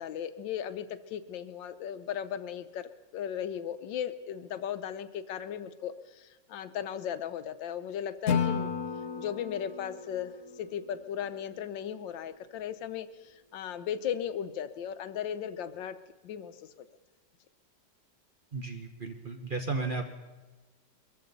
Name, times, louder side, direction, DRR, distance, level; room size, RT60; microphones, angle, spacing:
voice 1, 0.0-8.7 9.2-10.3 10.6-16.0 16.2-16.7, left 9 dB, 85° left, 11 dB, 1.5 m, -36 dB
Acoustic guitar / Strum, 8.3-11.4, left 6 dB, 50° left, 1.4 m, -33 dB
voice 2, 18.5-20.0, right 3 dB, 40° right, 4 dB, 0.9 m, -34 dB
22.5 x 14.5 x 4.0 m, 1.2 s
omnidirectional pair, 2.0 m